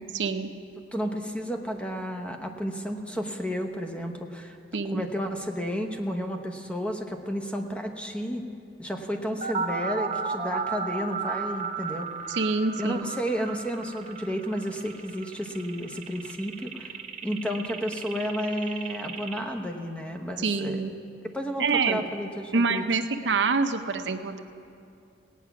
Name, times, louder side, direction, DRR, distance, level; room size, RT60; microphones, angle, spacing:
voice 1, 0.1-0.5 4.7-5.0 12.3-13.1 20.4-20.9 21.6-22.0 22.5-24.4, right 4 dB, 80° right, 8 dB, 0.7 m, -26 dB
voice 2, 0.9-4.6 4.9-8.4 8.8-12.4 12.8-20.8 21.3-22.8, equal, 5° left, 4 dB, 0.9 m, -32 dB
sound 1, 9.4-19.4, right 5 dB, 40° right, 1.0 m, -34 dB
18.0 x 9.3 x 5.9 m, 2.6 s
head